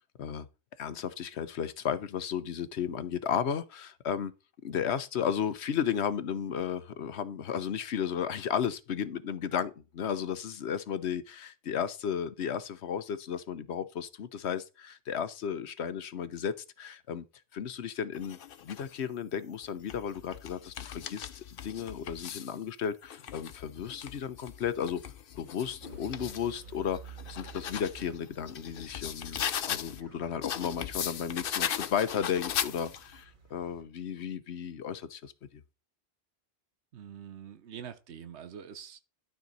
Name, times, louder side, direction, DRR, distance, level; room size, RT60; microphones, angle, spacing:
voice 1, 0.8-4.3 4.6-17.2 17.5-25.0 25.4-35.6, left 8 dB, 80° left, 1.1 m, -34 dB
sound 1, 18.1-18.9 19.6-22.6 23.0-26.5 26.9-30.0 30.4-33.2, left 9 dB, 60° left, 0.8 m, -38 dB
sound 2, 25.8-33.8, right 5 dB, 45° right, 2.2 m, -51 dB
voice 2, 36.9-39.0, right 8 dB, 85° right, 1.1 m, -45 dB
12.0 x 5.8 x 4.1 m
omnidirectional pair, 1.1 m